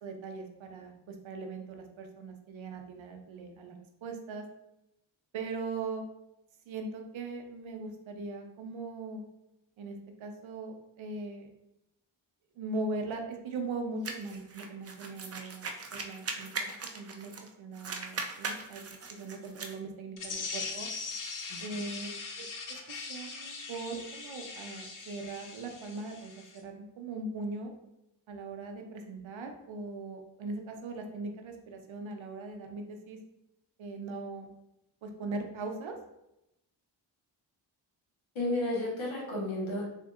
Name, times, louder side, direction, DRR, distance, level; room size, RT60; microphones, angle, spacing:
voice 1, 0.0-3.8 4.0-4.4 5.3-6.0 6.7-9.3 9.8-11.5 12.6-16.5 16.9-20.9 21.6-22.8 23.1-27.7 28.3-33.2 33.8-34.5 35.0-36.0, right 3 dB, 70° right, 4 dB, 0.7 m, -40 dB
sound 1, 14.0-17.5 17.7-19.8, right 4 dB, 30° right, 0.5 m, -39 dB
sound 2, 20.2-26.6, left 4 dB, 40° left, 0.6 m, -41 dB
voice 2, 21.5-21.9 38.3-39.9, left 1 dB, 70° left, -4 dB, 1.3 m, -33 dB
3.5 x 2.5 x 2.4 m, 0.86 s
cardioid pair, 45°, 49 cm